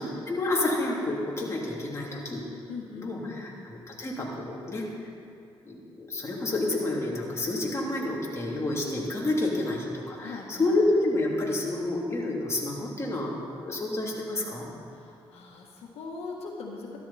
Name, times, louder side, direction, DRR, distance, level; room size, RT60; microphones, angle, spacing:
voice 1, 0.0-2.4 2.9-3.5 4.0-4.8 5.6-13.3 13.6-14.7, left 2 dB, 30° left, -4 dB, 3.0 m, -29 dB
voice 2, 2.7-3.5 10.2-10.8 14.9-17.0, left 4 dB, 85° left, -1 dB, 1.5 m, -40 dB
13.5 x 13.0 x 4.3 m, 2.7 s
cardioid pair, 90°, 10 cm